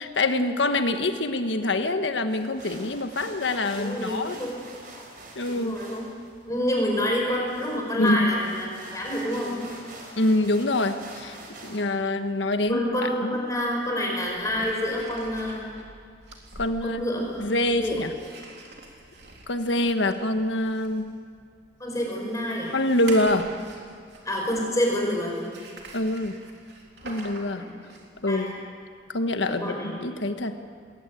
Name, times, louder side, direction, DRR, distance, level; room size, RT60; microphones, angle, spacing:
voice 1, 0.0-4.4 5.3-5.8 7.9-8.4 10.2-11.4 11.6-13.4 16.5-17.0 17.4-18.1 19.5-21.1 22.7-23.5 25.9-26.4 27.0-27.6 28.2-28.6 29.1-30.6, left 2 dB, 80° left, 8 dB, 1.4 m, -25 dB
sound 1, 2.3-11.9, right 2 dB, 50° right, 4.5 m, -45 dB
voice 2, 3.8-4.5 5.5-6.0 6.5-9.6 12.7-15.7 16.8-17.3 17.7-18.0 21.8-22.7 24.2-25.5 27.5-27.7 28.3-28.6 29.5-30.0, equal, 20° left, -1 dB, 5.0 m, -28 dB
sound 2, 12.7-12.8 14.2-24.5 25.3-28.3, right 2 dB, 65° right, 3.6 m, -45 dB
21.0 x 18.0 x 9.1 m, 2.1 s
head